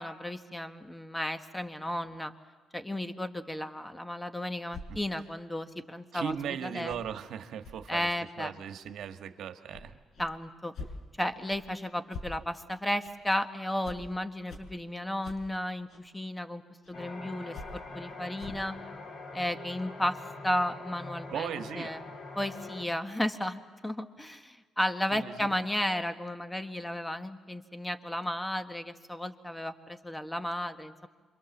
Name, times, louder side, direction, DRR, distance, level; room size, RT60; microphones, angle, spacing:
voice 1, 0.0-2.3 2.7-7.0 7.9-8.5 10.2-10.7 11.2-16.6 16.9-18.8 19.3-20.2 20.4-22.0 22.3-31.1, left 1 dB, 10° left, 9 dB, 1.5 m, -34 dB
sound 1, 4.7-4.9 6.3-6.4 6.9-7.0 7.6-7.8 8.3-8.4 8.8-9.0 9.7-9.9 10.1-10.3 10.7-10.9 11.5-11.6 12.1-12.3 13.0-13.1 13.8-14.0 14.5-14.6 15.2-15.4 15.9-16.0 16.8-16.9 17.5-17.7 18.4-18.6, left 3 dB, 65° left, 5.1 m, -44 dB
voice 2, 6.1-8.1 8.4-9.9 21.3-21.9 25.1-25.5, right 8 dB, 75° right, 7 dB, 1.5 m, -37 dB
sound 2, 16.9-22.8, left 3 dB, 50° left, 2.2 m, -44 dB
27.0 x 24.0 x 7.3 m, 1.5 s
cardioid pair, 90°, 0 cm